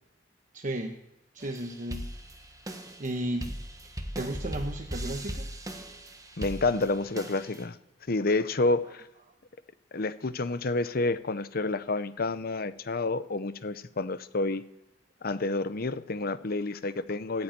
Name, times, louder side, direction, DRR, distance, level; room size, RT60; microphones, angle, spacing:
voice 1, 0.5-1.0 1.3-2.1 3.0-3.5 4.2-5.5 8.8-8.9, right 1 dB, 45° right, 3 dB, 1.1 m, -34 dB
sound 1, 1.4-7.6, right 1 dB, 20° right, 1.3 m, -39 dB
voice 2, 6.4-7.8 8.1-9.0 9.9-14.6 15.2-17.4, left 3 dB, 55° left, 13 dB, 0.8 m, -29 dB
13.0 x 9.7 x 9.0 m, 0.85 s
head